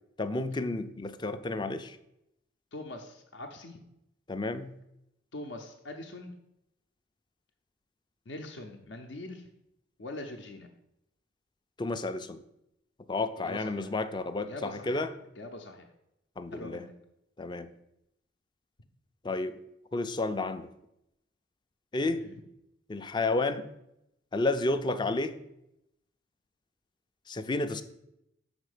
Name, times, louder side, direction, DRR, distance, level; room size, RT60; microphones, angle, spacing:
voice 1, 0.2-2.0 4.3-4.8 11.8-12.4 13.1-15.1 16.4-16.8 17.4-17.7 19.2-19.6 19.9-20.7 21.9-22.2 22.9-23.7 24.3-25.4 27.3-27.8, left 2 dB, 25° left, 11 dB, 0.4 m, -31 dB
voice 2, 2.7-3.8 5.3-6.3 8.3-9.5 10.0-10.7 13.4-14.0 14.4-15.1 15.4-15.9 16.5-16.9 22.2-22.3, left 2 dB, 65° left, 3 dB, 0.7 m, -43 dB
6.2 x 4.4 x 6.5 m, 0.83 s
head